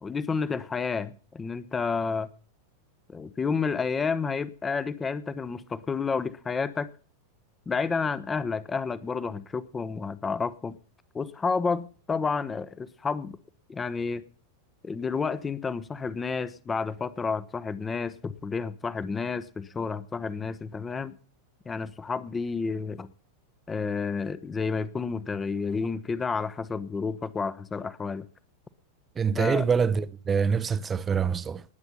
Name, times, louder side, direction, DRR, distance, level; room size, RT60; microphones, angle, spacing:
voice 1, 0.0-2.3 3.1-6.9 7.7-10.8 11.1-13.4 13.7-14.2 14.8-21.1 21.7-23.1 23.7-28.3 29.3-29.6, left 5 dB, 15° left, 1.0 m, -30 dB
voice 2, 29.2-31.6, right 6 dB, 20° right, 0.8 m, -25 dB
19.5 x 8.2 x 5.5 m
figure-of-eight pair, 90°, 0 cm